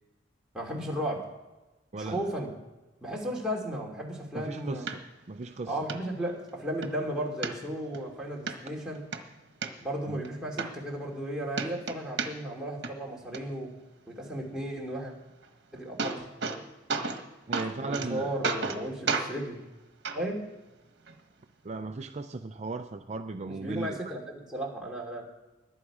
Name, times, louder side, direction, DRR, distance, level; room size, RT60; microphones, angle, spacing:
voice 1, 0.5-1.3 1.9-2.5 3.0-4.9 5.7-9.0 9.8-13.7 14.1-15.1 15.7-16.2 17.7-19.6 20.1-20.4 23.4-24.2 24.5-25.3, right 1 dB, 5° right, -3 dB, 2.6 m, -34 dB
voice 2, 1.9-2.3 4.3-5.8 8.7-8.8 10.1-10.2 17.5-18.5 21.6-24.1, right 3 dB, 35° right, 6 dB, 0.5 m, -37 dB
sound 1, 4.9-5.0 5.4-5.5 5.9-6.0 6.5-6.9 7.4-8.0 8.5-8.6 8.9-9.7 10.2-10.3 10.6-11.3 11.5-12.6 12.8-13.4 15.4-15.5 15.8-16.6 16.9-17.2 17.5-18.1 18.4-18.8 19.1-19.3 20.0-20.2 21.1-21.2, right 4 dB, 65° right, 1.3 m, -32 dB
21.0 x 7.2 x 4.9 m, 1.1 s
head